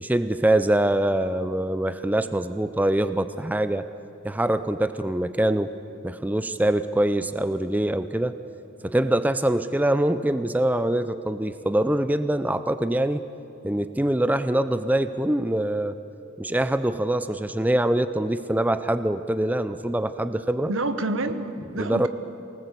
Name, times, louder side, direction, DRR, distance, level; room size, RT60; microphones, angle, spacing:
voice 1, 0.0-3.8 4.2-5.7 6.0-8.4 8.8-13.2 13.6-16.0 16.4-20.7 21.7-22.1, right 1 dB, 10° right, 11 dB, 0.5 m, -24 dB
voice 2, 20.7-22.1, right 2 dB, 80° right, 10 dB, 1.3 m, -28 dB
24.0 x 19.0 x 8.3 m, 2.8 s
head